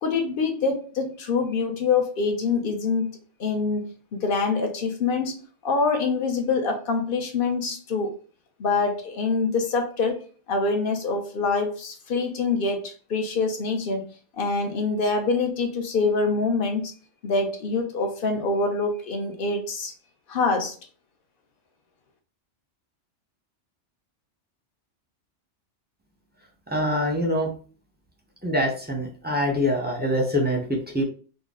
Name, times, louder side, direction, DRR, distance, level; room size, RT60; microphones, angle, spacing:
voice 1, 0.0-3.1 3.4-8.1 8.6-10.2 10.5-16.9 17.2-19.9 20.3-20.7, left 4 dB, 55° left, 3 dB, 0.9 m, -25 dB
voice 2, 26.7-27.5 28.4-31.0, equal, 10° right, 0 dB, 0.6 m, -24 dB
3.8 x 2.1 x 3.6 m, 0.40 s
omnidirectional pair, 1.2 m